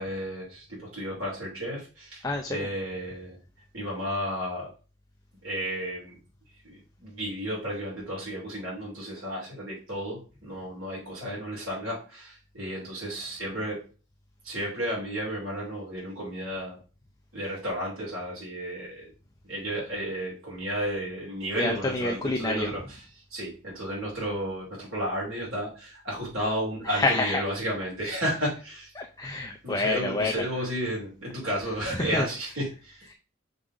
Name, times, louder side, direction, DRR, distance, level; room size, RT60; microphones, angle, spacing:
voice 1, 0.0-3.4 3.7-4.7 5.4-6.2 6.6-13.8 14.4-16.8 17.3-19.1 19.4-28.9 29.6-33.1, equal, 80° right, -5 dB, 3.0 m, -33 dB
voice 2, 2.2-2.7 21.6-22.7 26.9-27.4 29.0-30.5 31.9-32.3, left 2 dB, 15° left, 2 dB, 0.5 m, -28 dB
5.4 x 3.7 x 4.9 m, 0.36 s
head